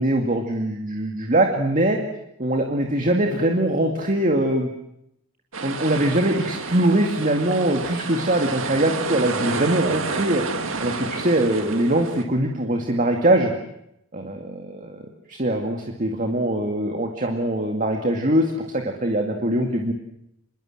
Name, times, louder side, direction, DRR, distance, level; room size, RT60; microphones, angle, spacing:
voice 1, 0.0-2.0 2.4-4.7 5.6-10.4 10.8-13.5 14.1-15.0 15.3-19.9, right 1 dB, 35° right, 3 dB, 2.2 m, -22 dB
sound 1, 5.5-12.2, right 4 dB, 60° right, 2.4 m, -30 dB
26.5 x 22.0 x 7.7 m, 0.79 s
head